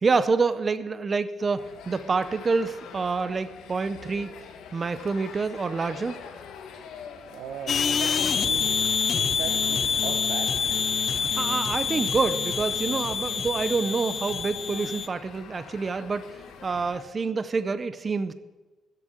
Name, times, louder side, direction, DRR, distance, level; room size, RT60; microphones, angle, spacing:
voice 1, 0.0-4.3 4.7-6.2 11.1-16.3 16.6-18.3, right 4 dB, 25° right, 13 dB, 0.5 m, -27 dB
sound 1, 1.6-17.0, left 6 dB, 75° left, 1.4 m, -45 dB
voice 2, 7.3-8.8 9.1-10.5, right 8 dB, 70° right, 4 dB, 0.9 m, -38 dB
sound 2, 7.7-15.1, left 6 dB, 35° left, 0.4 m, -26 dB
13.5 x 7.7 x 7.8 m, 1.2 s
cardioid pair, 170°, 0 cm